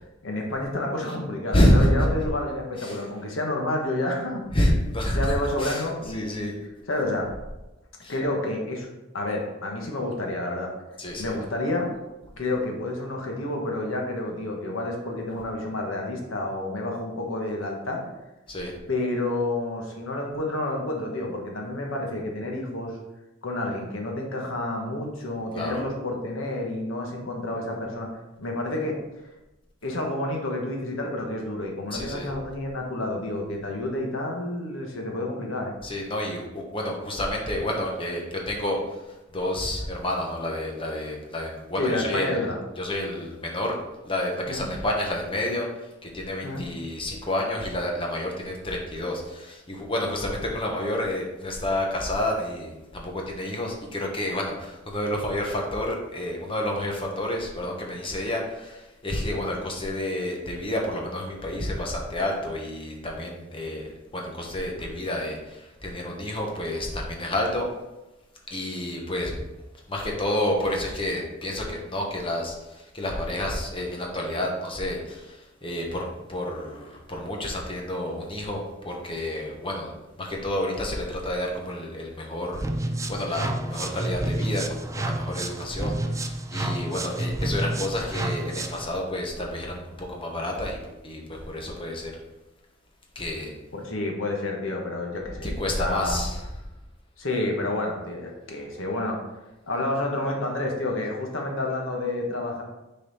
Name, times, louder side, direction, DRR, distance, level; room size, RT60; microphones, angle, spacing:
voice 1, 0.2-4.4 5.0-6.6 6.9-7.3 8.1-8.9 9.1-10.7 11.1-11.9 12.4-18.0 18.9-23.0 23.4-28.1 28.4-29.0 29.8-35.7 41.8-42.6 44.5-44.7 46.4-46.6 93.7-95.5 95.8-96.3 97.2-99.2 99.7-102.6, left 2 dB, 80° left, 1 dB, 1.3 m, -29 dB
voice 2, 1.5-2.1 2.8-3.0 4.5-5.3 5.6-5.8 6.1-6.5 8.0-8.1 11.0-11.3 18.5-18.7 25.5-25.8 31.9-32.3 35.8-38.8 39.3-42.4 42.8-43.8 44.0-45.7 46.0-67.7 68.5-69.3 69.9-72.5 72.9-75.3 75.6-79.9 80.2-82.6 83.1-86.0 86.5-90.8 91.0-91.2 91.5-92.1 93.1-93.5 95.4-96.3, left 1 dB, 25° left, 0 dB, 1.2 m, -29 dB
sound 1, 82.5-88.9, right 1 dB, 15° right, 0.4 m, -29 dB
6.6 x 4.2 x 4.1 m, 1.0 s
head